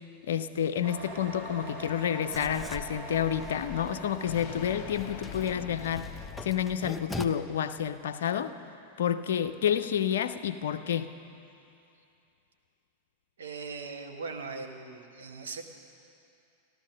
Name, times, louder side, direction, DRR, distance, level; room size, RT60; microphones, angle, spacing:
voice 1, 0.2-6.1 6.4-8.5 9.0-11.1, left 9 dB, 60° left, 9 dB, 0.5 m, -29 dB
sound 1, 0.8-6.1, right 1 dB, 45° right, 3.1 m, -43 dB
Writing, 2.3-7.3, left 2 dB, 5° left, 0.6 m, -43 dB
sound 2, 4.3-8.2, left 7 dB, 40° left, 1.0 m, -44 dB
voice 2, 13.4-15.6, right 4 dB, 65° right, 4 dB, 1.2 m, -39 dB
14.5 x 12.5 x 6.4 m, 2.6 s
figure-of-eight pair, 90°, 0 cm